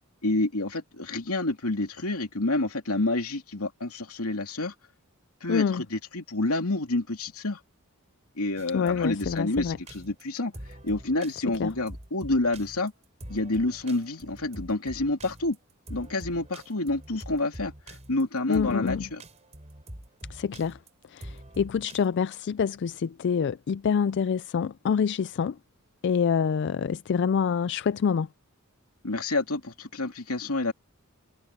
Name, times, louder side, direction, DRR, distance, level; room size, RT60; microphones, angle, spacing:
voice 1, 0.2-4.7 5.4-7.6 8.4-10.5 10.8-12.9 13.3-15.6 15.9-19.2 29.0-30.7, left 2 dB, 80° left, 2.7 m, -28 dB
voice 2, 5.5-5.8 8.7-9.8 11.6-11.7 18.5-19.1 20.3-20.8 21.1-25.6 26.0-28.3, left 6 dB, 55° left, 0.3 m, -26 dB
sound 1, 8.6-22.1, right 1 dB, 30° right, 4.2 m, -44 dB
head